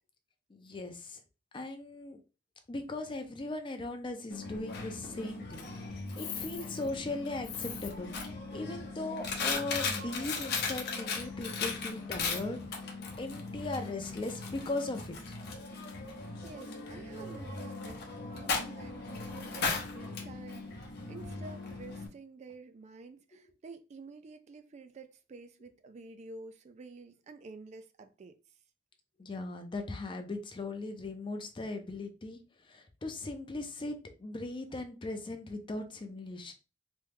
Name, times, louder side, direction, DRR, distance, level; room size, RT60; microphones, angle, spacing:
voice 1, 0.5-1.2 1.5-2.2 2.7-12.6 13.2-15.4 23.3-23.4 29.2-36.5, left 2 dB, 25° left, 0.5 m, -39 dB
Coin (dropping), 4.3-22.1, left 4 dB, 60° left, 0.7 m, -38 dB
voice 2, 16.0-18.0 18.3-28.6, right 3 dB, 35° right, 0.3 m, -50 dB
3.0 x 2.3 x 3.3 m
head